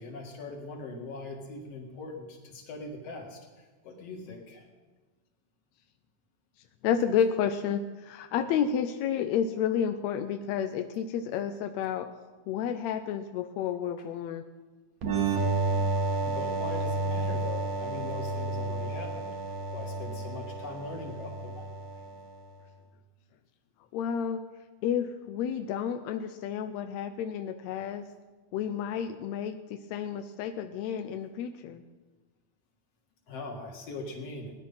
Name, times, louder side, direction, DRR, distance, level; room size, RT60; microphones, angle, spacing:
voice 1, 0.0-3.4 3.8-4.7 16.2-19.3 19.7-21.7 33.3-34.5, left 3 dB, 55° left, 1 dB, 2.9 m, -41 dB
voice 2, 6.8-12.1 12.5-14.4 23.9-24.4 24.8-28.0 28.5-29.6 29.9-31.8, left 8 dB, 75° left, 7 dB, 1.6 m, -30 dB
sound 1, 15.0-22.5, right 3 dB, 70° right, 2.6 m, -31 dB
18.0 x 10.5 x 5.5 m, 1.3 s
omnidirectional pair, 3.6 m